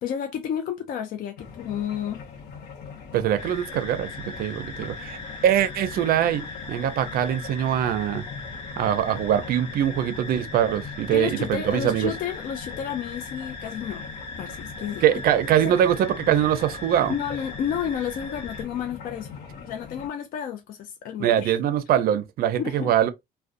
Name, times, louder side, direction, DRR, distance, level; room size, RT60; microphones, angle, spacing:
voice 1, 0.0-2.2 11.1-14.1 14.4-15.0 15.6-15.7 17.1-19.3 19.6-21.5 22.6-22.9, left 8 dB, 60° left, 0.4 m, -31 dB
sound 1, 1.4-20.1, left 6 dB, 85° left, 0.8 m, -42 dB
voice 2, 3.1-4.1 4.4-8.2 8.8-12.1 15.0-17.1 21.2-23.1, right 10 dB, 60° right, 0.4 m, -23 dB
sound 2, 3.4-18.6, left 3 dB, 40° left, 1.2 m, -39 dB
2.4 x 2.1 x 2.4 m
cardioid pair, 110°, 17 cm